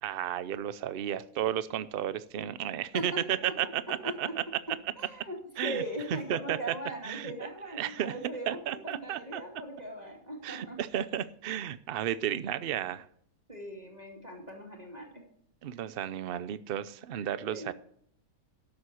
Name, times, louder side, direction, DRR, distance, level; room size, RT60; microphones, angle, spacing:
voice 1, 0.0-4.4 5.6-5.8 6.1-6.6 7.0-7.3 7.7-8.1 8.5-9.4 10.4-13.1 15.6-17.7, right 10 dB, 55° right, 15 dB, 0.7 m, -33 dB
voice 2, 2.9-3.7 4.0-4.3 5.0-10.8 13.5-15.2 17.5-17.7, equal, 30° right, 0 dB, 2.6 m, -40 dB
12.5 x 7.3 x 6.2 m, 0.67 s
omnidirectional pair, 1.5 m